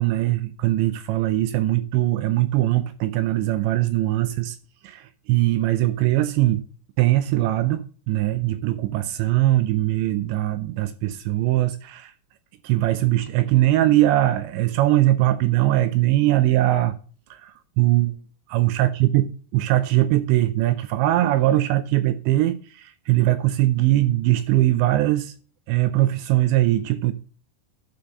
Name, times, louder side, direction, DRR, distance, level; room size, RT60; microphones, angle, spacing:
voice 1, 0.0-4.6 4.8-6.7 7.0-12.1 12.6-16.9 17.3-18.2 18.5-19.3 19.5-25.3 25.7-27.1, right 15 dB, 80° right, 2.7 m, -21 dB
11.5 x 4.4 x 5.2 m
omnidirectional pair, 5.4 m